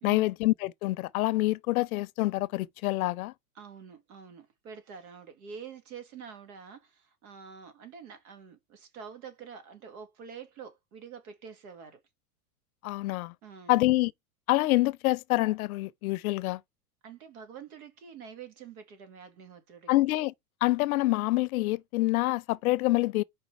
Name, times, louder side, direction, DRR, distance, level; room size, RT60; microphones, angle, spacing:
voice 1, 0.0-3.3 12.8-13.3 13.7-14.1 14.5-16.6 19.9-20.3 20.6-23.2, left 19 dB, 65° left, 0.6 m, -26 dB
voice 2, 3.6-12.0 13.4-13.7 17.0-19.9, right 6 dB, 65° right, 2.4 m, -47 dB
5.1 x 4.6 x 4.6 m
supercardioid pair, 125°, 45 cm